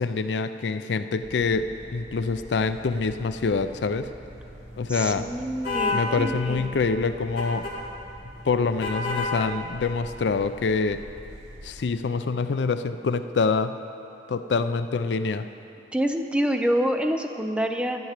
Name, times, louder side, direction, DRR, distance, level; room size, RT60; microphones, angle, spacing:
voice 1, 0.0-4.1 4.8-5.3 5.9-7.7 8.4-11.0 11.6-13.7 14.3-15.5, left 4 dB, 75° left, 11 dB, 0.4 m, -25 dB
sound 1, 1.2-11.8, equal, 80° right, 3.1 m, -45 dB
voice 2, 4.9-6.7 15.9-18.0, equal, 5° right, 5 dB, 0.5 m, -26 dB
sound 2, 5.6-6.0 7.4-7.7 8.8-9.3, left 3 dB, 55° left, 2.2 m, -27 dB
12.0 x 6.0 x 8.1 m, 2.8 s
head